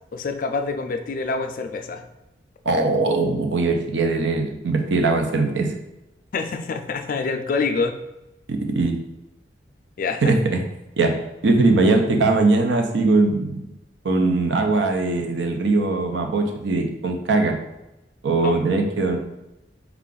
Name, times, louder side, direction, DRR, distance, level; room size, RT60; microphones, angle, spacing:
voice 1, 0.1-2.0 6.3-8.0 10.0-10.3 18.4-18.6, left 4 dB, 50° left, 7 dB, 0.3 m, -26 dB
voice 2, 2.6-5.7 8.5-9.0 10.2-10.6 11.0-11.2 11.4-13.7 14.0-17.6 18.2-19.2, right 3 dB, 80° right, 4 dB, 0.6 m, -20 dB
4.5 x 2.4 x 3.8 m, 0.95 s
head